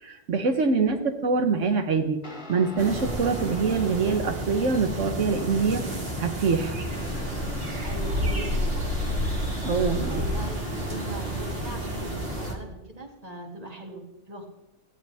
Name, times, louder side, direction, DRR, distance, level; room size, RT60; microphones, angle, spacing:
voice 1, 0.0-1.0 1.2-2.2 2.5-5.8 6.2-6.8 9.6-10.2, right 4 dB, 85° right, 6 dB, 1.5 m, -24 dB
voice 2, 0.8-1.1 5.7-6.0 7.8-8.8 10.1-14.5, equal, 30° right, 2 dB, 2.5 m, -39 dB
Guitar, 2.2-11.2, equal, 40° left, 2.0 m, -44 dB
sound 1, 2.8-12.5, equal, 50° right, 2.5 m, -30 dB
sound 2, 6.9-12.5, equal, 80° left, 2.3 m, -41 dB
18.0 x 14.5 x 3.5 m, 0.98 s
omnidirectional pair, 1.2 m